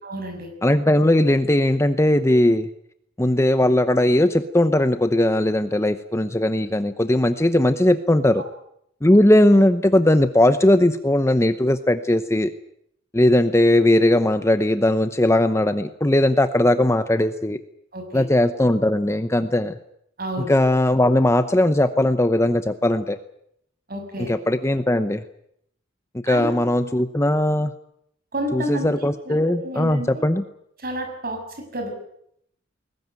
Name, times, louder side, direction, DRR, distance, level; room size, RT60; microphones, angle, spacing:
voice 1, 0.0-0.5 8.4-8.5 17.9-18.2 20.2-20.5 23.9-24.3 26.3-26.5 28.3-28.9 29.2-30.2 30.8-31.9, right 1 dB, 50° right, 5 dB, 6.6 m, -30 dB
voice 2, 0.6-2.7 3.2-8.4 9.0-12.5 13.1-17.6 18.1-19.8 20.5-23.2 24.2-25.2 26.2-27.7 28.5-30.4, left 1 dB, 15° left, 10 dB, 0.8 m, -19 dB
21.0 x 19.5 x 9.3 m, 0.73 s
head